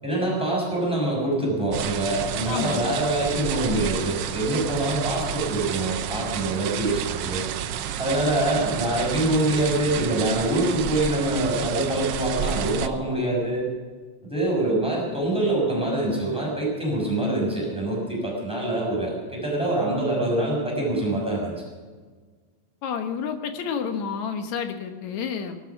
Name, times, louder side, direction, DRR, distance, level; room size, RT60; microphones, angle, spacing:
voice 1, 0.0-7.5 8.0-13.6 14.2-21.5, right 1 dB, ahead, -3 dB, 6.3 m, -25 dB
sound 1, 1.7-12.9, right 9 dB, 80° right, 1.4 m, -30 dB
voice 2, 2.5-2.9 22.8-25.6, left 6 dB, 70° left, 6 dB, 2.5 m, -30 dB
19.5 x 12.5 x 6.0 m, 1.5 s
omnidirectional pair, 3.6 m